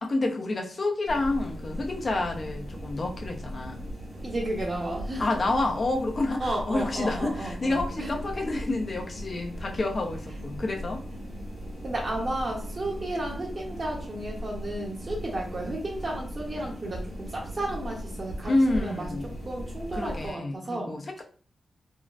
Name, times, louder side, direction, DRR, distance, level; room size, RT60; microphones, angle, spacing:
voice 1, 0.0-3.8 5.2-11.0 18.4-19.4 19.9-21.2, left 2 dB, 50° left, 2 dB, 0.7 m, -29 dB
sound 1, 1.1-20.3, equal, 70° right, 1.3 m, -38 dB
voice 2, 4.2-5.4 6.4-8.2 11.8-20.9, right 1 dB, 45° right, -2 dB, 0.8 m, -33 dB
3.7 x 2.0 x 2.5 m, 0.43 s
cardioid pair, 70°, 0 cm